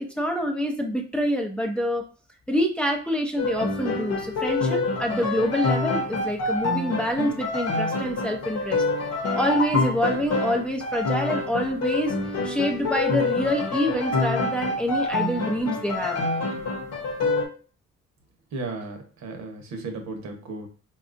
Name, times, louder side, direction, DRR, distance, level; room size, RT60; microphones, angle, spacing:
voice 1, 0.0-2.0 2.5-8.8 9.3-12.1 12.4-16.2, equal, 5° left, 1 dB, 0.5 m, -26 dB
sound 1, 3.4-17.5, left 3 dB, 55° left, 0.9 m, -27 dB
voice 2, 18.5-20.7, right 3 dB, 65° right, 4 dB, 0.9 m, -35 dB
4.1 x 2.4 x 2.5 m, 0.38 s
cardioid pair, 90°, 30 cm